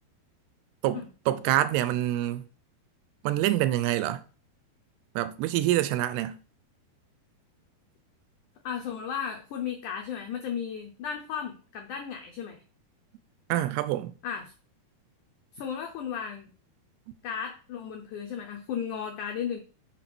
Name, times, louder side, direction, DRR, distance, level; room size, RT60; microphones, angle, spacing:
voice 1, 0.8-2.4 3.2-4.2 5.2-6.4 13.5-14.1, right 13 dB, 85° right, 2.6 m, -26 dB
voice 2, 8.6-12.6 14.2-14.5 15.5-16.5 17.2-19.6, left 8 dB, 85° left, 1.7 m, -35 dB
6.6 x 4.1 x 6.0 m
omnidirectional pair, 4.6 m